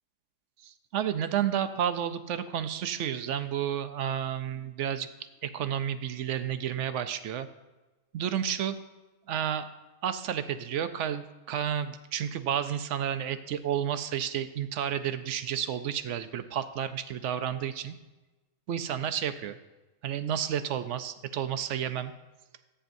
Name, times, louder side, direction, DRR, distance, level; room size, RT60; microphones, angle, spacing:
voice 1, 0.6-5.1 5.4-7.5 8.1-8.8 9.3-9.7 10.0-18.0 18.7-19.6 20.0-22.1, right 9 dB, 65° right, 11 dB, 0.8 m, -31 dB
13.5 x 8.8 x 2.6 m, 1.1 s
omnidirectional pair, 1.5 m